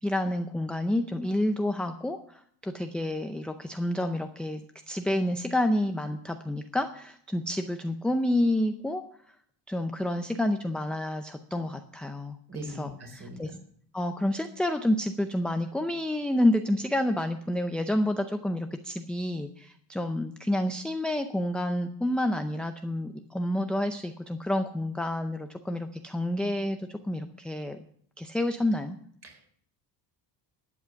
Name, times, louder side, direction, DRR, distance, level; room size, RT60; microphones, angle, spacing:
voice 1, 0.0-9.0 9.7-12.4 12.8-13.5 13.9-27.8 28.2-29.0, left 1 dB, ahead, 6 dB, 0.5 m, -29 dB
voice 2, 12.5-13.6 29.2-29.5, right 1 dB, 35° right, 4 dB, 3.9 m, -41 dB
12.5 x 8.5 x 6.9 m, 0.62 s
cardioid pair, 135°, 45 cm